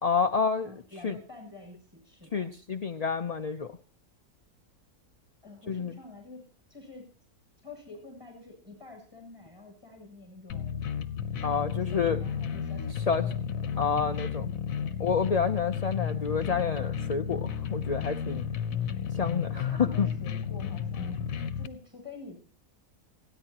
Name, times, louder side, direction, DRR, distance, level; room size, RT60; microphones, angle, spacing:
voice 1, 0.0-0.7 1.0-1.2 2.3-3.7 5.7-5.9 11.4-12.2 13.1-13.2 13.8-14.5 15.0-18.5 19.1-20.1, left 6 dB, 50° left, 6 dB, 0.4 m, -28 dB
voice 2, 0.6-2.5 5.4-7.1 7.6-10.8 11.4-13.9 14.3-15.0 19.7-21.2 21.5-22.4, left 3 dB, 15° right, 2 dB, 7.5 m, -48 dB
sound 1, 10.5-21.7, left 8 dB, 65° left, 1.2 m, -32 dB
29.5 x 10.0 x 2.9 m, 0.40 s
omnidirectional pair, 1.6 m